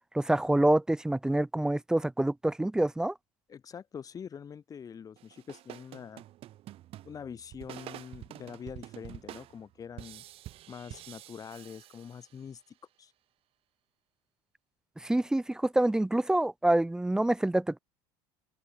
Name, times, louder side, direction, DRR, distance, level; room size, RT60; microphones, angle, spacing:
voice 1, 0.1-3.1 15.0-17.8, right 1 dB, 5° right, 0.4 m, -26 dB
voice 2, 3.5-6.2 7.0-10.2 10.7-12.6 13.0-13.1, left 7 dB, 30° left, 1.9 m, -44 dB
sound 1, 5.2-12.6, right 14 dB, 50° right, 2.1 m, -48 dB
open air
supercardioid pair, 105°, 12 cm